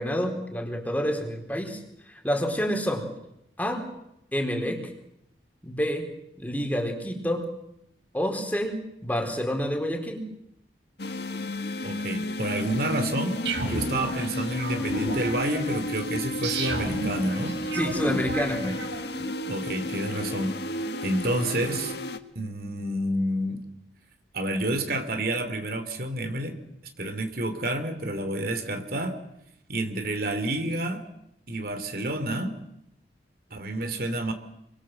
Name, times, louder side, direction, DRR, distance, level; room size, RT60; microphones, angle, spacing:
voice 1, 0.0-1.8 2.1-3.1 3.6-3.9 4.3-4.9 5.6-6.1 6.4-7.5 8.1-10.3 17.7-18.8, equal, 10° left, 3 dB, 4.1 m, -28 dB
sound 1, 11.0-22.2, left 1 dB, 65° left, 1.7 m, -33 dB
voice 2, 11.8-17.6 18.1-18.2 18.6-18.7 19.5-21.9 22.3-23.6 24.3-26.6 27.0-29.2 29.7-31.0 31.5-32.6 33.5-34.3, right 1 dB, 55° right, 7 dB, 3.0 m, -29 dB
sound 2, 13.5-19.3, right 1 dB, 85° right, 6.7 m, -33 dB
29.5 x 23.5 x 7.8 m, 0.82 s
head